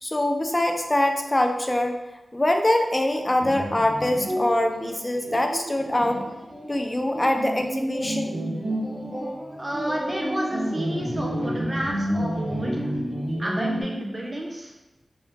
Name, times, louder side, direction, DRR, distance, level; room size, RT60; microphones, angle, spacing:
voice 1, 0.0-2.0 2.3-6.2 6.7-8.4, left 1 dB, 25° left, 4 dB, 0.4 m, -23 dB
sound 1, 3.4-13.8, equal, 50° right, 1.1 m, -30 dB
voice 2, 9.6-12.9 13.4-14.7, right 1 dB, 25° right, -2 dB, 0.8 m, -31 dB
2.7 x 2.7 x 3.5 m, 0.99 s
cardioid pair, 50°, 0 cm